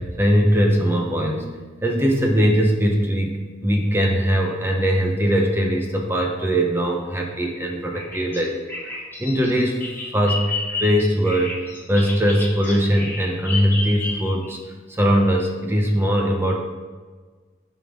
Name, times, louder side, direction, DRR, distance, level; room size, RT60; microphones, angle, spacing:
voice 1, 0.0-1.5 1.8-8.6 9.2-9.8 10.1-10.5 10.8-11.5 11.9-14.6 14.9-16.6, equal, 10° right, 0 dB, 0.9 m, -20 dB
Bird vocalization bird call bird song, 7.9-14.5, left 3 dB, 10° left, 2.3 m, -31 dB
10.0 x 5.3 x 3.8 m, 1.4 s
head